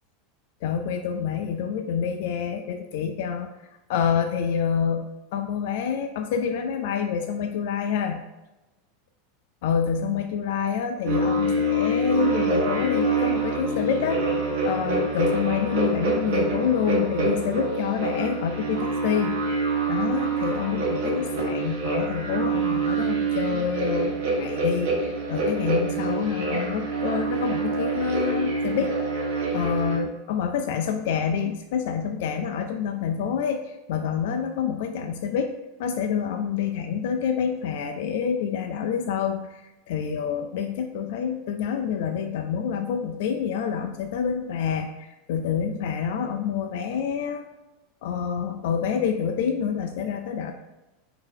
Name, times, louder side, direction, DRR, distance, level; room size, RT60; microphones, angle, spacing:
voice 1, 0.6-3.5 3.9-8.2 9.6-14.2 14.6-29.3 29.5-35.5 35.8-47.5 48.0-50.5, left 7 dB, 60° left, 5 dB, 0.3 m, -27 dB
sound 1, 11.0-30.0, right 2 dB, 65° right, 1.3 m, -26 dB
4.8 x 2.8 x 3.6 m, 1.0 s
supercardioid pair, 170°, 0 cm